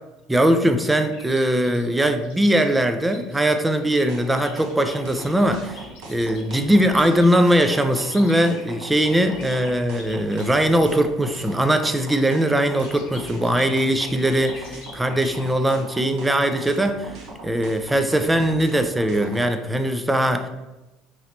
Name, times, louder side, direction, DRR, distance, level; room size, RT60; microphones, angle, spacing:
voice 1, 0.3-5.8 6.1-17.1 17.4-20.5, right 1 dB, 10° right, 7 dB, 0.4 m, -20 dB
sound 1, 1.0-10.6 11.7-16.3, left 3 dB, 70° left, 0.9 m, -46 dB
sound 2, 4.1-19.5, right 2 dB, 65° right, 0.8 m, -40 dB
3.1 x 2.8 x 4.3 m, 1.0 s
figure-of-eight pair, 60°, 0 cm